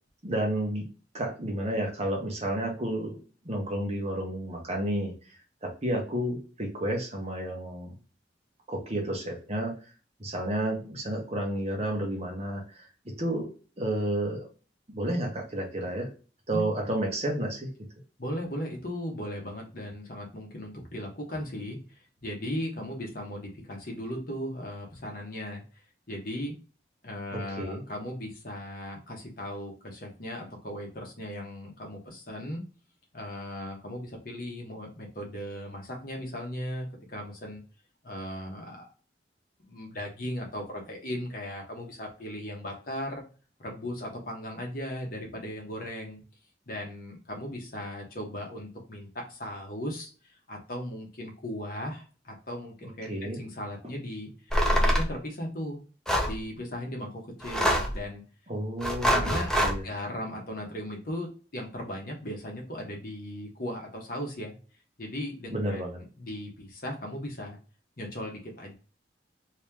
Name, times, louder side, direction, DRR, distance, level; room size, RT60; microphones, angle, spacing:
voice 1, 0.2-0.9 1.1-5.1 5.6-7.9 8.7-9.8 10.2-14.5 14.9-16.1 16.5-17.7 27.3-27.8 53.1-53.4 58.5-59.8 65.5-66.0, right 1 dB, 35° right, 0 dB, 1.0 m, -31 dB
voice 2, 18.2-25.6 26.1-26.5 27.0-32.6 33.1-37.6 38.0-38.9 39.6-43.2 43.6-46.2 46.7-54.3 54.6-55.8 56.2-58.2 59.1-59.5 59.8-61.3 61.5-64.6 65.0-65.8 66.2-67.6 68.0-68.7, equal, 55° left, 1 dB, 1.1 m, -37 dB
sound 1, 54.5-55.1 56.1-56.4 57.4-58.0 58.8-59.8, equal, 5° left, 0.5 m, -24 dB
3.1 x 2.8 x 3.4 m, 0.36 s
head